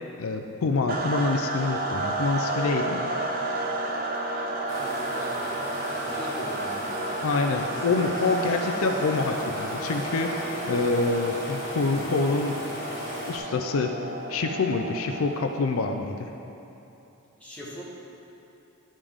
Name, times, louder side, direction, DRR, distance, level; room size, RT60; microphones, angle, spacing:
voice 1, 0.2-3.1 7.2-12.6 13.3-13.9 14.3-16.3, left 3 dB, 70° left, 4 dB, 0.4 m, -26 dB
sound 1, 0.9-15.6, right 2 dB, 40° right, 0.6 m, -32 dB
sound 2, 4.7-13.4, equal, 40° left, 1.9 m, -36 dB
voice 2, 4.8-5.4 5.9-6.9 17.4-17.8, equal, 5° left, -7 dB, 1.2 m, -41 dB
11.0 x 5.2 x 3.6 m, 2.9 s
head